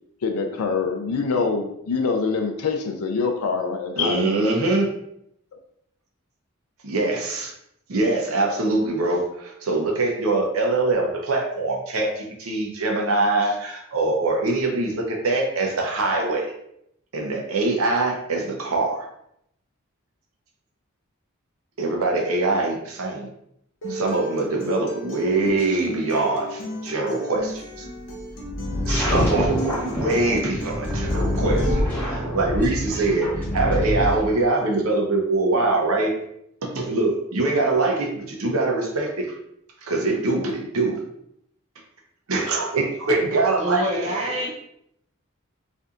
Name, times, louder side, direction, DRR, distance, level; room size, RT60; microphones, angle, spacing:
voice 1, 0.2-4.4, left 4 dB, 85° left, 5 dB, 0.4 m, -25 dB
voice 2, 4.0-4.9 6.8-7.5 7.9-16.5 17.1-19.1 21.8-23.3 23.9-27.9 28.9-33.3 33.5-36.1 36.6-39.3 39.8-41.0 42.3-44.4, right 2 dB, 75° right, 0 dB, 0.8 m, -23 dB
Acoustic guitar, 23.8-31.8, right 1 dB, 60° left, 0.9 m, -35 dB
sound 1, 27.7-34.2, left 1 dB, 25° left, 0.6 m, -29 dB
sound 2, 28.9-34.3, equal, 10° left, 1.3 m, -27 dB
voice 3, 43.6-44.5, right 1 dB, 30° right, -4 dB, 0.5 m, -26 dB
4.1 x 2.6 x 2.4 m, 0.74 s
head